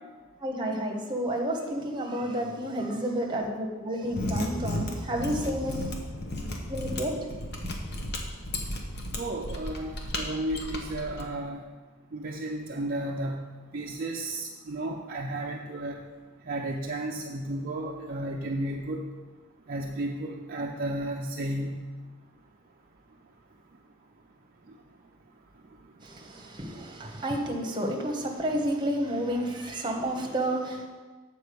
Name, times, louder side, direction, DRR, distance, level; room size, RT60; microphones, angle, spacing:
voice 1, 0.4-5.8 6.7-7.3 26.0-30.9, right 1 dB, 20° right, 1 dB, 1.1 m, -30 dB
Mechanisms, 4.0-11.2, left 1 dB, 50° left, 1.0 m, -34 dB
voice 2, 9.2-9.9 10.2-11.6 12.1-13.4 13.7-16.0 16.5-19.0 19.7-21.8, right 1 dB, 40° right, -1 dB, 0.5 m, -33 dB
8.1 x 4.5 x 6.9 m, 1.3 s
head